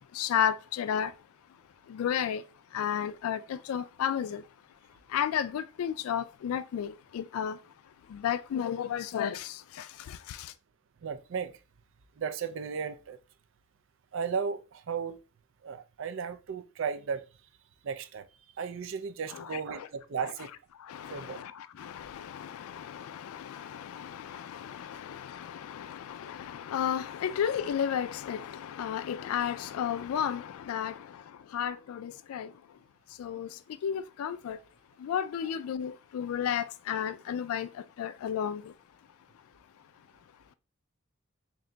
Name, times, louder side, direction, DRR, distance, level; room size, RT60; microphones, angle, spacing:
voice 1, 0.1-1.1 1.9-2.4 2.7-4.4 5.1-7.6 8.1-10.5 19.3-19.9 20.8-32.5 33.2-34.6 35.0-38.7, left 9 dB, 90° left, 0.3 m, -33 dB
voice 2, 11.0-11.6 12.2-13.2 14.1-15.2 15.6-17.2 17.8-18.3 18.6-20.5 21.1-21.4, right 6 dB, 65° right, 0.4 m, -35 dB
3.8 x 2.8 x 3.2 m
head